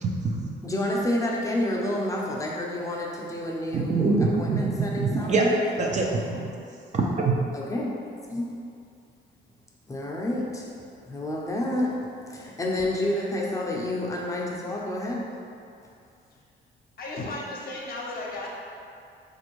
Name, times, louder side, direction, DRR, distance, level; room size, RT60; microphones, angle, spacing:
voice 1, 0.0-0.5 3.7-5.5 5.8-6.5 6.9-7.3, right 3 dB, 35° right, -2 dB, 0.5 m, -25 dB
voice 2, 0.6-5.6 7.5-8.5 9.9-10.7 11.0-12.0 12.2-15.3, left 1 dB, 15° left, -3 dB, 0.6 m, -29 dB
voice 3, 17.0-18.5, left 2 dB, 50° left, -3 dB, 0.7 m, -34 dB
4.1 x 2.6 x 3.1 m, 2.4 s
cardioid pair, 90°, 20 cm